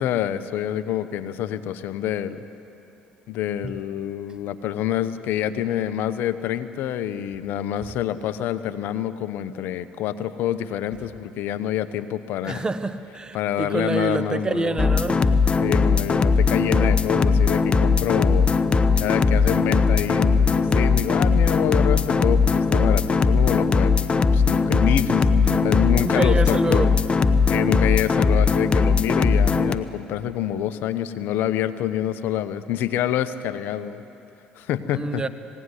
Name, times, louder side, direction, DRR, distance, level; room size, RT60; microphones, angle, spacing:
voice 1, 0.0-2.5 3.3-12.6 13.3-14.8 15.6-18.5 19.0-27.0 27.5-34.0 34.6-35.2, left 11 dB, 70° left, 0.9 m, -27 dB
voice 2, 12.4-15.3 25.5-26.9 34.9-35.3, right 3 dB, 25° right, 1.3 m, -27 dB
sound 1, 14.8-29.8, left 4 dB, 30° left, 0.9 m, -19 dB
20.5 x 17.5 x 9.8 m
supercardioid pair, 70°, 4 cm